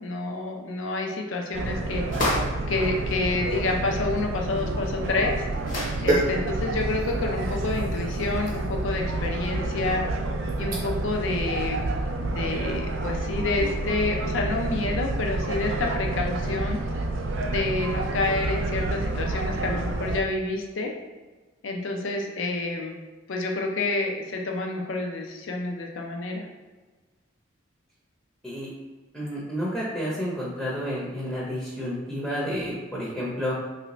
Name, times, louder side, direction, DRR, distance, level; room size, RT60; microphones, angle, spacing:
voice 1, 0.0-2.1 2.7-5.3 6.0-10.0 10.6-11.9 12.2-16.8 17.5-20.9 21.6-23.0 23.3-26.5, left 2 dB, 80° left, 1 dB, 0.5 m, -28 dB
sound 1, 1.5-20.2, right 2 dB, 75° right, 0.4 m, -29 dB
sound 2, 2.1-2.7 4.5-4.6 4.8-4.9 5.6-6.1, left 1 dB, 45° left, 0.7 m, -28 dB
sound 3, 4.7-11.2 11.6-11.8, right 2 dB, 45° right, 0.7 m, -33 dB
voice 2, 29.1-33.6, equal, 5° left, -7 dB, 0.6 m, -30 dB
3.2 x 2.6 x 3.0 m, 1.3 s
head